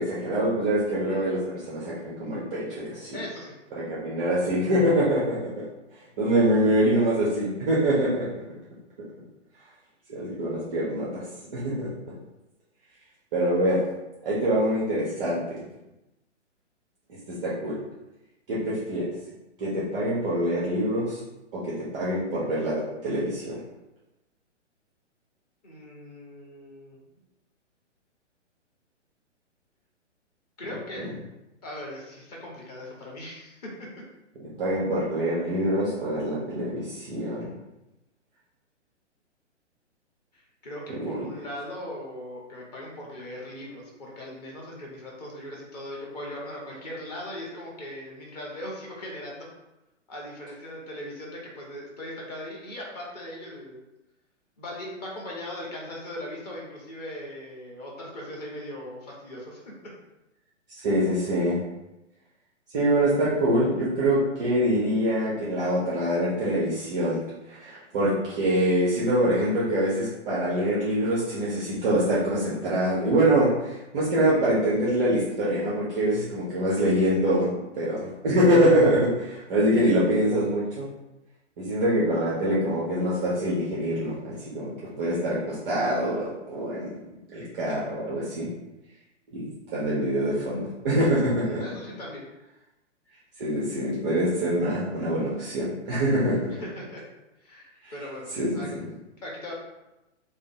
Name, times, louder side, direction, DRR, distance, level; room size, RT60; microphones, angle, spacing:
voice 1, 0.0-3.2 3.8-5.7 6.2-8.2 10.1-11.1 11.5-11.9 13.3-13.8 14.2-15.6 17.4-17.7 18.5-19.1 19.6-21.2 21.5-23.6 31.0-31.1 34.6-37.5 41.0-41.1 60.7-61.6 62.7-67.2 67.5-77.5 77.8-80.8 81.6-86.9 87.3-88.5 89.3-91.6 93.4-96.5 97.8-97.9 98.3-98.5, right 1 dB, 5° right, -8 dB, 0.4 m, -24 dB
voice 2, 3.1-3.5 25.6-27.0 30.6-31.0 31.6-33.9 40.3-49.4 50.1-53.8 54.6-59.6 91.4-92.2 96.5-97.0 97.4-98.7 99.2-99.5, left 1 dB, 35° left, -3 dB, 1.2 m, -39 dB
5.1 x 2.1 x 3.7 m, 0.96 s
figure-of-eight pair, 125°, 37 cm